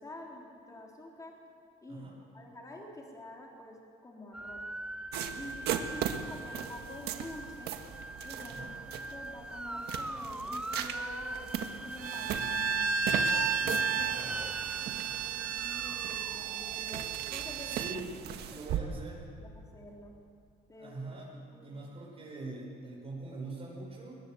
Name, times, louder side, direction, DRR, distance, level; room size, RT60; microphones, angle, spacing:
voice 1, 0.0-1.3 1.8-4.6 5.3-7.7 8.2-11.5 11.8-12.9 13.6-17.9 18.5-18.6 19.4-20.2 20.7-21.0 21.5-21.8, left 1 dB, 20° left, -1 dB, 3.8 m, -48 dB
sound 1, 4.3-17.4, equal, 5° right, 0.6 m, -38 dB
sound 2, 5.1-18.8, right 9 dB, 75° right, 1.7 m, -39 dB
Bowed string instrument, 12.0-18.1, right 12 dB, 60° right, 0.6 m, -35 dB
voice 2, 12.1-13.0 14.3-14.4 17.6-18.1 18.5-19.2 20.8-24.2, right 3 dB, 35° right, -4 dB, 6.0 m, -44 dB
21.0 x 21.0 x 7.9 m, 2.3 s
cardioid pair, 110°, 17 cm